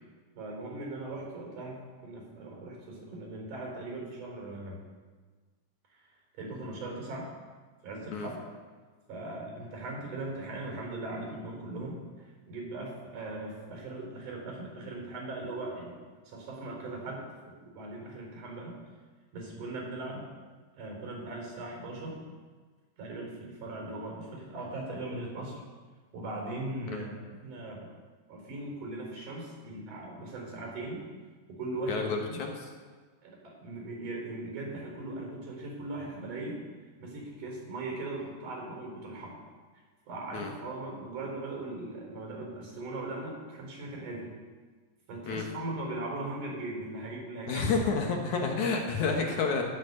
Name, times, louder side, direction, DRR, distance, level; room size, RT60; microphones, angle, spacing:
voice 1, 0.3-4.8 5.9-6.1 6.3-7.3 7.8-8.4 9.1-15.9 16.3-18.8 19.3-20.3 20.8-22.2 23.0-25.6 26.1-27.9 28.3-31.0 31.6-32.4 33.2-36.6 37.0-39.4 40.1-44.3 45.1-47.8 48.3-48.6, right 2 dB, 65° right, -1 dB, 5.8 m, -39 dB
voice 2, 31.9-32.5 40.3-40.5 45.3-45.4 47.5-49.6, left 4 dB, 65° left, 2 dB, 2.6 m, -29 dB
17.5 x 6.3 x 8.1 m, 1.4 s
omnidirectional pair, 3.9 m